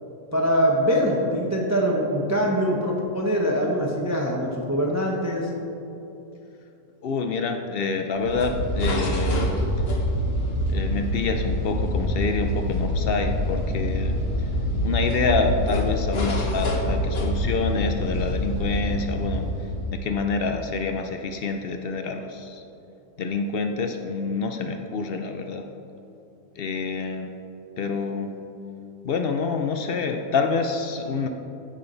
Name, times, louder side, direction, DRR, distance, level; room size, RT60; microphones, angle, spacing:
voice 1, 0.3-5.5, equal, 15° right, -2 dB, 0.6 m, -23 dB
voice 2, 7.0-9.5 10.7-14.2 14.8-19.5 19.9-22.6 23.2-25.6 26.6-27.3 27.8-28.3 29.0-31.3, left 4 dB, 75° left, 5 dB, 0.5 m, -27 dB
sound 1, 8.2-20.3, equal, 45° left, 1.2 m, -26 dB
14.5 x 5.8 x 3.9 m, 2.9 s
omnidirectional pair, 1.6 m